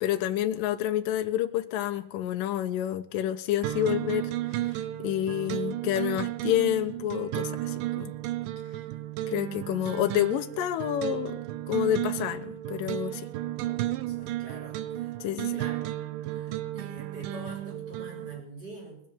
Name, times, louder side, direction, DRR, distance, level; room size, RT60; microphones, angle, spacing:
voice 1, 0.0-4.3 4.6-8.1 9.3-11.4 11.7-13.3 15.2-15.6, left 12 dB, 80° left, 7 dB, 2.3 m, -29 dB
sound 1, 3.6-18.4, right 14 dB, 75° right, 2.2 m, -33 dB
voice 2, 13.6-15.2 15.5-16.0 16.3-19.0, right 1 dB, 25° right, -4 dB, 6.3 m, -46 dB
19.5 x 7.5 x 8.6 m, 0.66 s
omnidirectional pair, 4.0 m